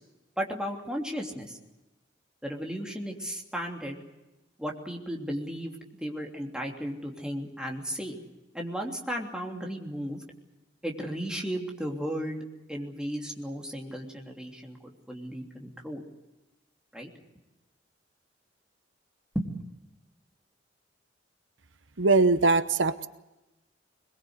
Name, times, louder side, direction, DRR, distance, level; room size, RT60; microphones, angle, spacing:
voice 1, 0.4-1.6 2.4-4.0 4.6-8.2 8.5-10.2 10.8-16.0 16.9-17.1 19.3-19.6, equal, 5° right, 0 dB, 3.1 m, -35 dB
voice 2, 22.0-23.1, right 3 dB, 75° right, 12 dB, 1.0 m, -21 dB
23.5 x 22.0 x 8.0 m, 1.0 s
head